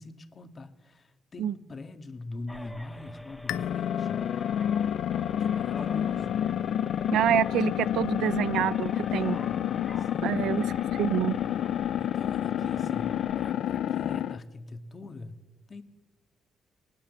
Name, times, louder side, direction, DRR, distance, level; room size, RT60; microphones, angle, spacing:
voice 1, 0.0-4.2 5.4-6.4 9.1-9.6 10.0-10.5 12.0-15.4 15.7-15.8, left 2 dB, 35° left, 8 dB, 2.0 m, -43 dB
sound 1, 2.5-13.5, equal, 5° left, 1.7 m, -47 dB
sound 2, 3.5-14.4, left 10 dB, 75° left, 0.7 m, -29 dB
voice 2, 7.1-9.4 10.2-10.6 10.9-11.4, right 11 dB, 80° right, 17 dB, 0.7 m, -27 dB
19.5 x 19.0 x 7.5 m, 1.1 s
cardioid pair, 90°, 0 cm